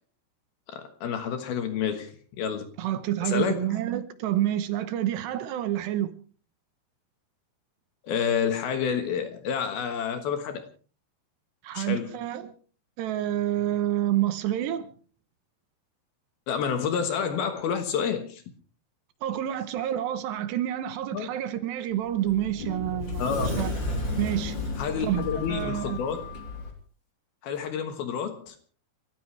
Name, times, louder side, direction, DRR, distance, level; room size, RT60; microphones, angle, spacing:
voice 1, 0.7-2.7 3.2-3.7 8.0-10.6 11.7-12.1 16.5-18.4 21.1-21.3 23.2-23.6 24.8-26.2 27.4-28.6, left 7 dB, 65° left, 2.9 m, -29 dB
voice 2, 2.8-6.1 11.6-12.5 13.0-14.9 19.2-23.2 23.6-23.7 24.2-24.6 25.0-26.0, right 12 dB, 75° right, 3.0 m, -28 dB
Sliding door, 21.9-26.7, left 2 dB, 25° left, 3.7 m, -32 dB
30.0 x 14.0 x 3.3 m
omnidirectional pair, 5.3 m